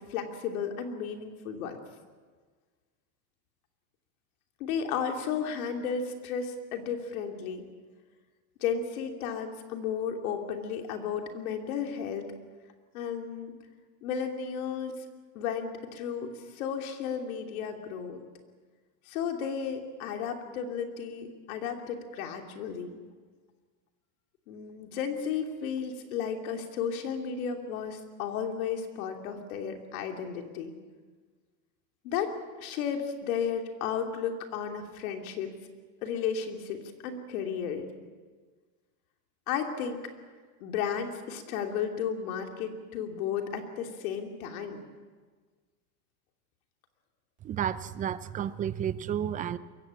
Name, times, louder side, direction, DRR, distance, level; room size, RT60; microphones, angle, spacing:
voice 1, 0.1-1.8 4.6-7.6 8.6-12.3 12.9-13.5 14.0-15.0 15.3-18.2 19.1-22.9 24.5-30.7 32.0-35.5 36.0-37.8 39.5-40.0 40.6-44.8, left 7 dB, 80° left, 3.1 m, -33 dB
voice 2, 47.4-49.6, right 9 dB, 20° right, 0.5 m, -31 dB
22.5 x 16.0 x 8.5 m
supercardioid pair, 150°, 42 cm